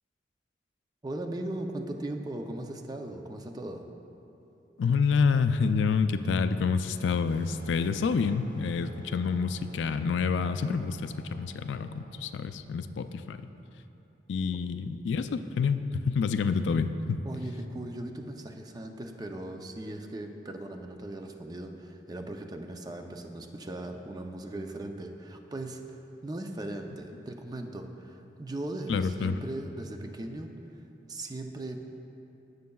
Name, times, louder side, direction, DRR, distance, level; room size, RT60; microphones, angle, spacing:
voice 1, 1.0-3.8 17.2-25.8 26.2-30.5 31.1-31.8, right 1 dB, 20° right, 4 dB, 0.5 m, -38 dB
voice 2, 4.8-13.5 14.3-17.2 28.9-29.4, left 5 dB, 90° left, 10 dB, 0.4 m, -28 dB
sound 1, 7.3-12.3, left 2 dB, 85° right, 1.2 m, -53 dB
16.5 x 6.5 x 2.3 m, 2.9 s
head